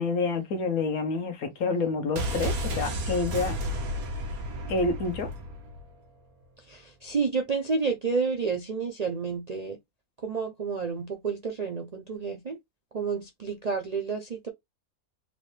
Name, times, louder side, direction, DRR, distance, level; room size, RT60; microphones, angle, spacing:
voice 1, 0.0-3.6 4.7-5.3, left 3 dB, 80° left, 1.5 m, -28 dB
sound 1, 2.2-5.9 6.2-6.3, equal, 80° right, 1.6 m, -32 dB
voice 2, 6.7-9.8 10.2-12.6 12.9-14.5, right 5 dB, 50° right, 0.5 m, -30 dB
4.2 x 2.7 x 3.2 m
omnidirectional pair, 1.5 m